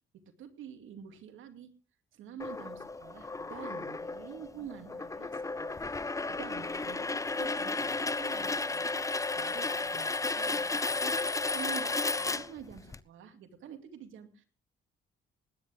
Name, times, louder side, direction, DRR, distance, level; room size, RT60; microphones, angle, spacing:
voice 1, 0.4-1.7 2.1-14.5, right 8 dB, 80° right, 7 dB, 2.5 m, -48 dB
sound 1, 2.4-13.0, left 3 dB, 15° left, 0.7 m, -33 dB
20.0 x 10.5 x 3.5 m, 0.36 s
cardioid pair, 90°, 20 cm